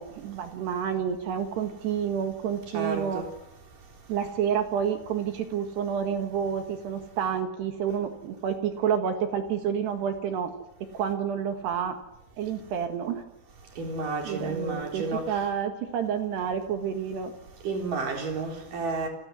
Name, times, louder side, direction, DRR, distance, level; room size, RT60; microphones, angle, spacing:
voice 1, 0.0-3.2 4.1-10.5 10.9-12.0 12.4-13.2 14.3-17.3, right 8 dB, 65° right, 3.5 m, -29 dB
voice 2, 2.7-3.3 13.8-15.3 17.6-19.1, right 3 dB, 45° right, 5.1 m, -31 dB
29.0 x 21.0 x 9.7 m
omnidirectional pair, 5.9 m